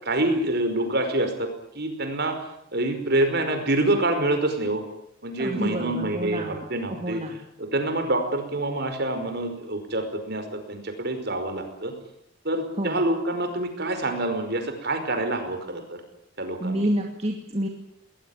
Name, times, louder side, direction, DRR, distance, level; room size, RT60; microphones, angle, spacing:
voice 1, 0.0-2.4 2.7-4.8 5.2-7.2 7.6-11.9 12.4-16.0 16.4-16.9, right 1 dB, 50° right, 6 dB, 5.1 m, -26 dB
voice 2, 5.4-6.6 6.9-7.4 12.8-13.0 16.6-17.7, right 1 dB, 30° right, 1 dB, 2.5 m, -28 dB
20.5 x 19.5 x 9.8 m, 0.75 s
head